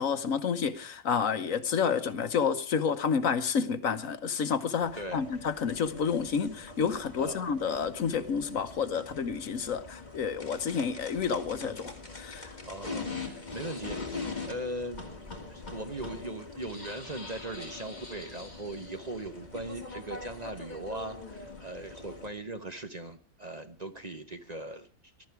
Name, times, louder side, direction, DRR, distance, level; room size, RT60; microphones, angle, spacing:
voice 1, 0.0-12.5, left 6 dB, 65° left, 1.4 m, -30 dB
sound 1, 4.8-22.3, left 3 dB, 30° left, 2.7 m, -43 dB
voice 2, 12.6-15.0 15.4-24.9, right 1 dB, 30° right, 1.0 m, -39 dB
21.0 x 12.0 x 4.7 m
omnidirectional pair, 1.6 m